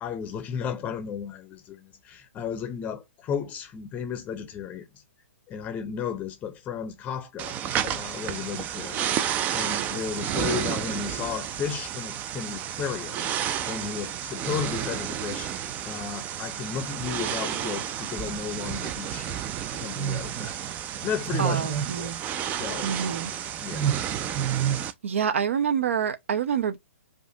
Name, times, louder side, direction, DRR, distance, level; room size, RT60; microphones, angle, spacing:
voice 1, 0.0-4.9 5.5-7.5 7.8-15.5 15.8-19.5 19.7-20.6 21.0-22.1 22.6-22.9 23.6-23.9, left 7 dB, 20° left, 0.6 m, -34 dB
sound 1, 7.4-24.9, right 10 dB, 20° right, 0.3 m, -30 dB
voice 2, 21.4-22.2 22.8-23.3 25.0-26.8, right 7 dB, 70° right, 0.7 m, -27 dB
4.8 x 2.5 x 3.8 m
hypercardioid pair, 125°, 7 cm